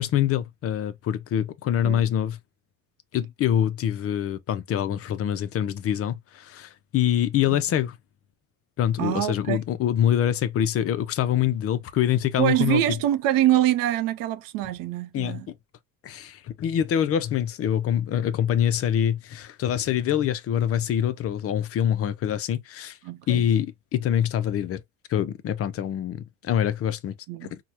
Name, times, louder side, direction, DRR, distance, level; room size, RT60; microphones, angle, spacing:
voice 1, 0.0-2.4 3.1-8.0 8.8-12.8 15.1-15.5 16.0-23.0 23.3-24.8 25.1-27.1 27.4-27.6, left 10 dB, 40° left, 0.5 m, -25 dB
voice 2, 9.0-9.6 12.4-15.5 23.0-23.5 27.3-27.5, right 13 dB, 70° right, 0.6 m, -24 dB
4.6 x 2.1 x 2.8 m
cardioid pair, 120°, 35 cm